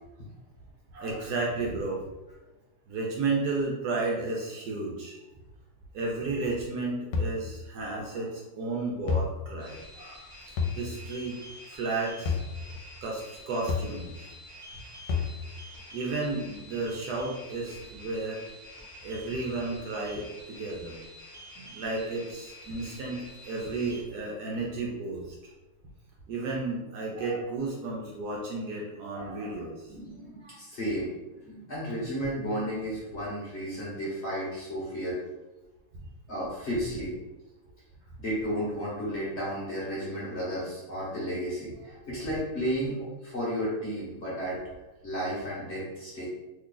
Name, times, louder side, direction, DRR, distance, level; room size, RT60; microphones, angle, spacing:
voice 1, 0.9-2.0 2.9-5.2 5.9-10.3 10.8-11.4 11.7-12.4 13.0-14.1 15.9-18.4 19.0-21.0 21.6-25.4 26.3-29.9, right 3 dB, 70° right, -2 dB, 1.0 m, -33 dB
sound 1, 7.1-7.4 9.1-9.3 10.6-10.8 12.3-12.5 13.7-13.9 15.1-15.4, left 5 dB, 80° left, 1.2 m, -28 dB
sound 2, 9.6-24.0, left 1 dB, 25° right, 0.7 m, -48 dB
voice 2, 29.9-31.1 31.4-35.2 36.3-37.1 38.2-44.6 45.0-46.2, equal, 45° left, -7 dB, 1.0 m, -33 dB
3.1 x 2.3 x 3.7 m, 1.1 s
omnidirectional pair, 2.0 m